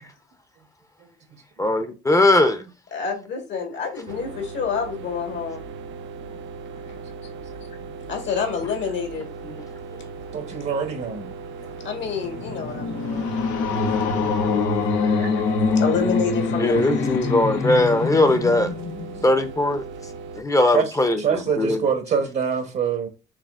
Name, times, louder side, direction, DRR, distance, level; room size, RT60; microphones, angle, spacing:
voice 1, 1.0-1.4 6.2-6.3 7.6-7.7 10.3-11.3 20.7-20.9 21.2-23.1, right 6 dB, 55° right, 0.9 m, -25 dB
voice 2, 1.6-2.6 16.6-18.7 19.2-19.9 20.4-21.8, left 2 dB, 15° left, 0.6 m, -19 dB
voice 3, 2.9-5.7 8.1-9.3 11.8-13.5 14.9-15.4 15.7-17.3, left 5 dB, 70° left, 1.4 m, -28 dB
sound 1, 4.1-20.4, right 5 dB, 75° right, 0.5 m, -38 dB
sound 2, 12.0-19.4, left 4 dB, 85° left, 0.7 m, -24 dB
4.9 x 3.3 x 2.4 m
cardioid pair, 90°, 20 cm